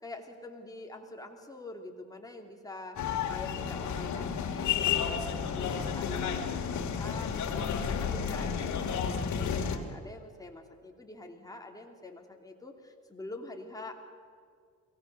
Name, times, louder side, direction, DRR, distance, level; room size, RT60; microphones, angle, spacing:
voice 1, 0.0-14.0, left 2 dB, 10° left, 2 dB, 3.1 m, -45 dB
sound 1, 3.0-9.8, left 7 dB, 70° left, 2.4 m, -31 dB
23.5 x 18.0 x 6.9 m, 2.1 s
cardioid pair, 90°, 30 cm